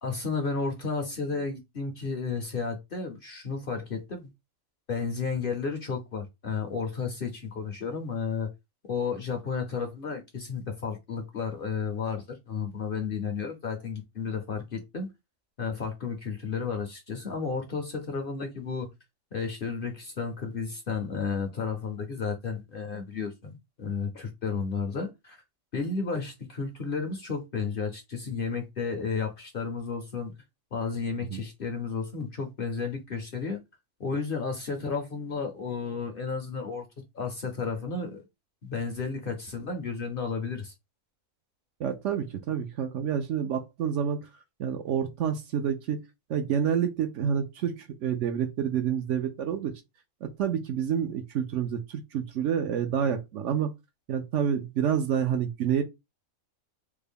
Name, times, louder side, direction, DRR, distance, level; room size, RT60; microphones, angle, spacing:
voice 1, 0.0-4.3 4.9-8.5 8.9-15.1 15.6-18.9 19.3-25.4 25.7-30.3 30.7-33.6 34.0-36.9 37.1-38.2 38.6-40.7, left 5 dB, 55° left, 0.7 m, -32 dB
voice 2, 41.8-44.2 44.6-46.0 46.3-49.7 50.2-53.7 54.1-55.8, right 8 dB, 70° right, 0.9 m, -28 dB
3.3 x 2.1 x 3.4 m
omnidirectional pair, 1.4 m